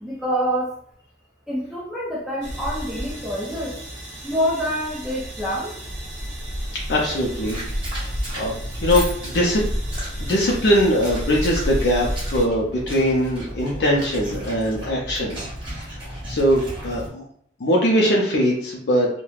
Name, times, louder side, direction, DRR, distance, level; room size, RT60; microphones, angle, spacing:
voice 1, 0.0-0.7 1.5-3.8 4.2-5.7, equal, ahead, -6 dB, 0.4 m, -26 dB
sound 1, 2.4-12.4, equal, 55° right, 0.9 m, -31 dB
voice 2, 6.9-7.6 7.9-8.5 8.8-9.6 10.2-15.4 16.0-17.2 17.6-19.2, equal, 55° left, -3 dB, 0.5 m, -21 dB
sound 2, 7.3-17.1, equal, 25° right, 1.0 m, -35 dB
3.1 x 2.1 x 2.3 m, 0.66 s
head